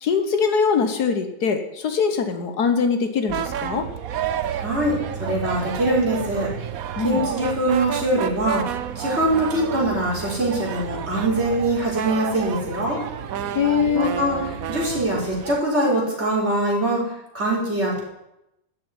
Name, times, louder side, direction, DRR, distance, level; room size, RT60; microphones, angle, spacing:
voice 1, 0.0-3.9 7.0-7.3 13.5-14.2, left 6 dB, 70° left, 7 dB, 1.8 m, -22 dB
sound 1, 3.3-15.6, right 9 dB, 65° right, 1.2 m, -30 dB
voice 2, 4.6-6.5 7.0-8.6 9.0-13.0 13.9-14.4 14.7-18.0, right 1 dB, 40° right, -5 dB, 5.7 m, -23 dB
13.0 x 7.7 x 9.8 m, 0.88 s
omnidirectional pair, 1.7 m